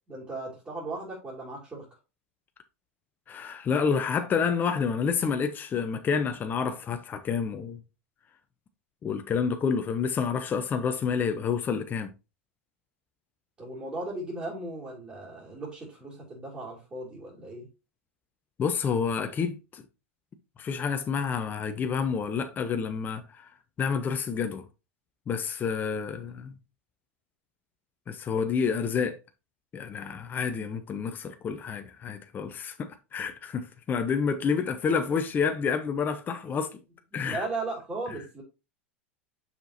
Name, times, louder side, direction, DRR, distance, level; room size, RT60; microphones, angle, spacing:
voice 1, 0.1-1.9 13.6-17.7 26.3-26.4 37.2-38.4, right 2 dB, 20° right, 3.0 m, -37 dB
voice 2, 3.3-7.8 9.0-12.1 18.6-19.8 20.6-23.5 23.8-24.6 25.3-26.5 28.1-29.2 29.7-36.8 37.1-37.4, left 6 dB, 30° left, 0.8 m, -29 dB
6.8 x 5.9 x 2.8 m
hypercardioid pair, 90°, 7 cm